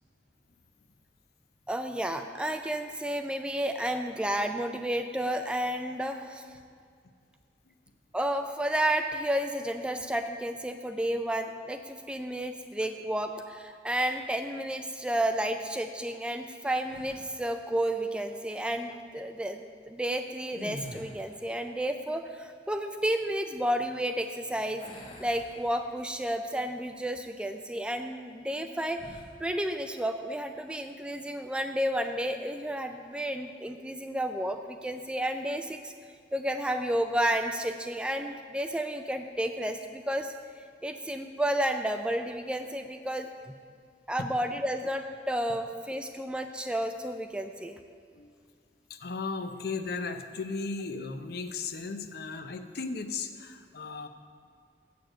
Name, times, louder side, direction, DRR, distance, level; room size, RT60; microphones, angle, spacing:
voice 1, 1.7-6.4 8.1-19.6 19.9-24.8 25.2-29.0 29.4-35.9 36.3-40.3 40.8-43.3 44.1-47.8, right 1 dB, 5° right, 7 dB, 0.3 m, -31 dB
sound 1, 16.9-17.5 20.4-21.5 24.8-26.2 26.7-26.9 28.9-29.4, left 1 dB, 30° left, 0.9 m, -46 dB
voice 2, 48.9-54.1, left 4 dB, 60° left, 7 dB, 0.6 m, -36 dB
7.8 x 6.9 x 6.2 m, 2.2 s
head